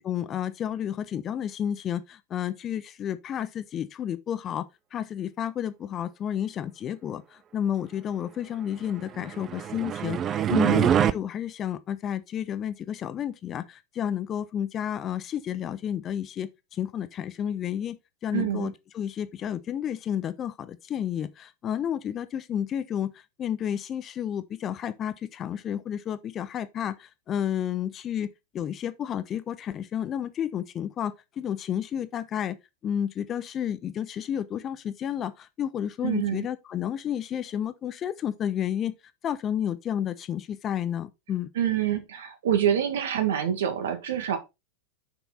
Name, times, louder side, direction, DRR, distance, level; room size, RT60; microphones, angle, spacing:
voice 1, 0.0-32.6 32.8-38.9 39.2-41.5, left 9 dB, 30° left, 0.7 m, -31 dB
sound 1, 9.2-11.1, right 9 dB, 25° right, 0.5 m, -24 dB
voice 2, 10.5-10.8 18.3-18.7 36.0-36.5 41.6-44.4, right 10 dB, 60° right, 1.9 m, -26 dB
6.7 x 6.0 x 4.2 m
figure-of-eight pair, 90°, 0 cm